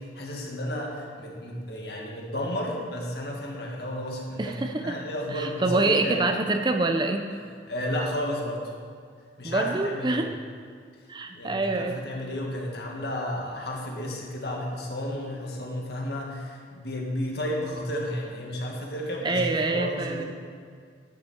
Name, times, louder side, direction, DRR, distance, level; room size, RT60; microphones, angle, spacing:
voice 1, 0.0-6.2 7.7-8.7 9.4-10.2 11.3-20.2, left 1 dB, 60° left, -1 dB, 2.0 m, -32 dB
voice 2, 4.4-5.0 5.3-7.3 9.4-10.3 11.1-12.0 19.2-20.2, right 2 dB, 25° right, 5 dB, 0.5 m, -26 dB
11.5 x 9.4 x 4.4 m, 2.1 s
head